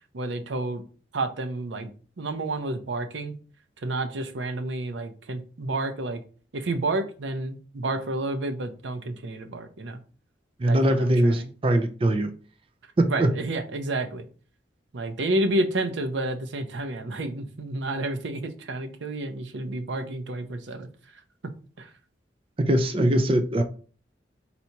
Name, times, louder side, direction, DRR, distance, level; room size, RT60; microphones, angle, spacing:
voice 1, 0.1-0.8 1.1-1.9 2.2-3.3 3.8-6.2 6.5-10.0 10.6-11.5 13.1-14.2 14.9-21.2 21.8-21.9, right 2 dB, 85° right, 0.6 m, -30 dB
voice 2, 10.6-12.3 13.0-13.3 22.6-23.6, right 1 dB, 30° right, 0.4 m, -22 dB
4.2 x 2.8 x 4.5 m
head